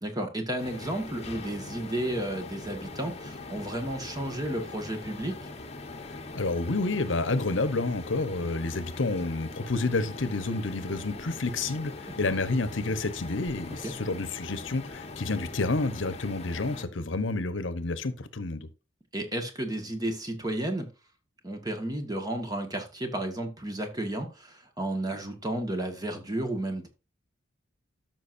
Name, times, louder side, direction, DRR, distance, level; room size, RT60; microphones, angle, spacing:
voice 1, 0.0-5.5 12.1-12.2 13.8-13.9 19.1-20.9 21.4-26.9, right 1 dB, 20° right, 1.7 m, -32 dB
sound 1, 0.6-16.9, left 3 dB, 35° left, 1.1 m, -42 dB
voice 2, 6.3-18.7, left 3 dB, 75° left, 1.0 m, -29 dB
13.0 x 6.1 x 2.6 m
head